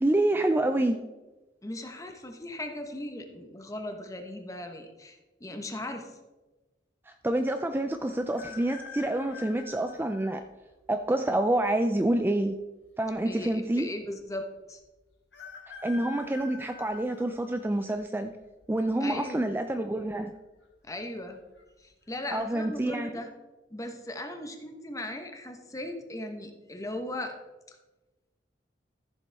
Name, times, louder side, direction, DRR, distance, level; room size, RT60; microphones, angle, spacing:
voice 1, 0.0-1.0 7.1-10.4 10.9-12.6 13.0-13.9 15.8-18.3 18.7-20.3 22.3-23.2, right 1 dB, 10° right, 7 dB, 0.4 m, -27 dB
voice 2, 1.6-6.2 13.2-14.8 19.0-19.5 20.8-21.4 21.8-23.3 23.7-27.3 27.7-27.8, left 1 dB, 20° left, 5 dB, 1.1 m, -38 dB
sound 1, 8.3-10.3 11.0-11.1 12.2-12.8 13.1-13.2 13.4-13.5 15.3-17.9 18.5-18.9 20.0-20.4 20.6-20.7 21.2-21.6 22.1-22.3, left 5 dB, 80° left, 1.9 m, -46 dB
14.5 x 7.1 x 3.5 m, 1.1 s
head